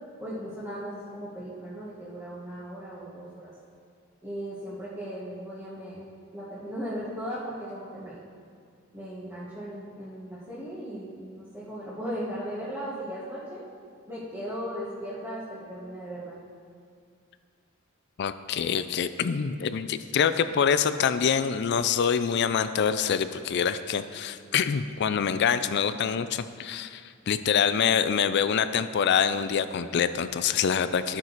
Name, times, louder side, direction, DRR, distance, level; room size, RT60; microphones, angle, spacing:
voice 1, 0.2-3.5 4.2-6.0 6.3-8.2 8.9-13.6 14.1-16.4, equal, 10° right, -11 dB, 1.4 m, -37 dB
voice 2, 18.2-31.2, left 7 dB, 50° left, 12 dB, 0.4 m, -25 dB
13.0 x 6.0 x 4.0 m, 2.2 s
head